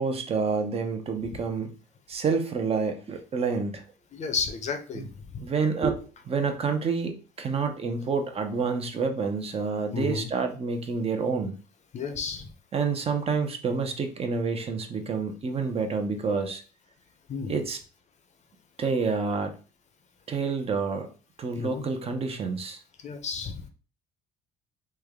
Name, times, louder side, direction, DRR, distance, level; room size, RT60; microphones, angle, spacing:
voice 1, 0.0-1.7 2.1-3.8 4.9-5.1 5.4-11.5 12.7-16.6 17.5-17.8 18.8-19.6 20.3-21.1 21.4-22.8, right 5 dB, 35° right, 5 dB, 0.6 m, -28 dB
voice 2, 4.1-5.1 5.3-5.4 9.9-10.3 11.9-12.5 17.3-17.6 21.5-21.8 23.0-23.6, left 5 dB, 45° left, 7 dB, 0.6 m, -32 dB
3.2 x 2.2 x 3.5 m, 0.36 s
cardioid pair, 110°, 17 cm